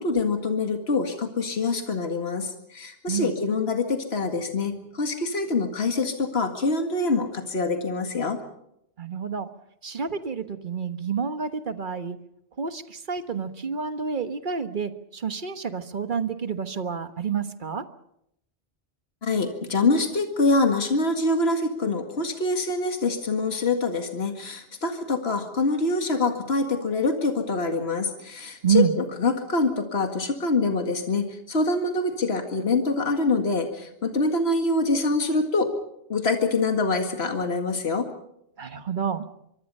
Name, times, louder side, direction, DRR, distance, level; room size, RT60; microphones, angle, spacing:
voice 1, 0.0-8.4 19.2-35.7 36.1-38.1, left 3 dB, 65° left, 5 dB, 2.2 m, -25 dB
voice 2, 9.0-9.5 9.8-12.2 12.6-17.8 28.6-28.9 38.6-39.3, right 6 dB, 50° right, 9 dB, 1.4 m, -28 dB
24.5 x 24.0 x 5.5 m, 0.78 s
omnidirectional pair, 1.1 m